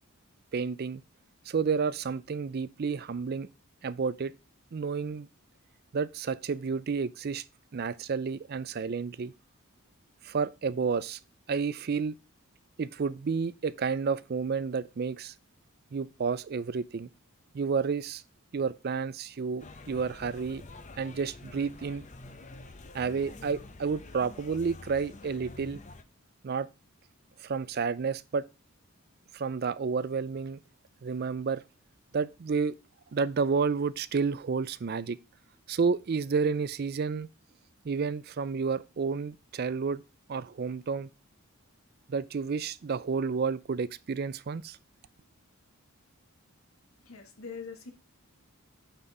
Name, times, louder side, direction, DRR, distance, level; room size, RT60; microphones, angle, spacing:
voice 1, 0.5-1.0 1.5-3.5 3.8-4.3 4.7-5.3 5.9-7.4 7.7-9.3 10.2-11.2 11.5-12.2 12.8-15.3 15.9-17.1 17.5-18.2 18.5-20.6 21.0-22.0 22.9-25.8 26.4-26.7 27.4-28.5 29.3-30.6 31.0-31.6 32.1-32.7 33.1-35.2 35.7-37.3 37.8-40.0 40.3-41.1 42.1-44.8, right 5 dB, 45° right, 0.4 m, -30 dB
sound 1, 19.6-26.0, left 2 dB, 35° left, 0.7 m, -47 dB
voice 2, 47.0-47.9, left 5 dB, 75° left, 1.6 m, -42 dB
8.7 x 4.4 x 4.8 m
head